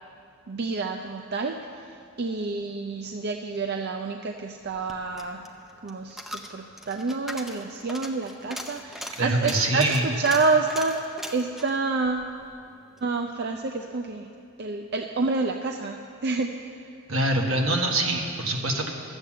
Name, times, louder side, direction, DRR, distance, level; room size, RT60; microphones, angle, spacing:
voice 1, 0.5-5.4 5.8-12.3 13.0-14.3 14.6-16.5, right 3 dB, 50° right, 3 dB, 0.5 m, -28 dB
Coin (dropping), 4.7-13.1 13.4-13.5, equal, ahead, 0.6 m, -40 dB
voice 2, 9.2-10.1 17.1-18.9, right 1 dB, 75° right, 1 dB, 1.5 m, -24 dB
12.5 x 8.0 x 7.4 m, 2.4 s
head